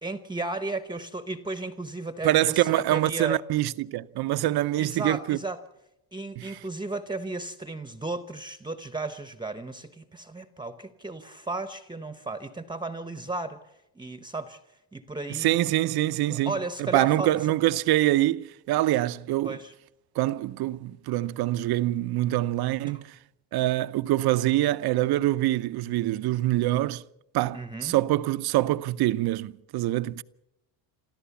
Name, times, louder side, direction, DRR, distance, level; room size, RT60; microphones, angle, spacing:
voice 1, 0.0-3.4 4.8-5.6 6.1-13.6 13.9-14.6 14.9-15.7 16.3-17.3 19.4-19.7 22.8-23.0 27.5-28.0, right 2 dB, 10° right, 0.9 m, -34 dB
voice 2, 2.2-5.4 6.4-6.6 15.3-19.6 20.2-23.2 23.5-27.0 27.3-30.2, right 15 dB, 55° right, 0.7 m, -25 dB
27.5 x 13.5 x 7.1 m
cardioid pair, 120°, 44 cm